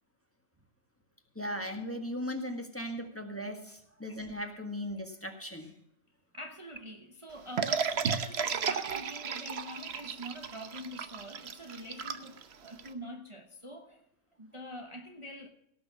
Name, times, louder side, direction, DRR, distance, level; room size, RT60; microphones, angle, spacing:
voice 1, 1.3-5.7, equal, 10° left, 1.6 m, -38 dB
voice 2, 6.3-14.0 14.4-15.5, equal, 25° right, 1.1 m, -45 dB
sound 1, 7.6-12.9, right 6 dB, 55° right, 1.1 m, -33 dB
18.0 x 6.8 x 5.9 m
omnidirectional pair, 1.4 m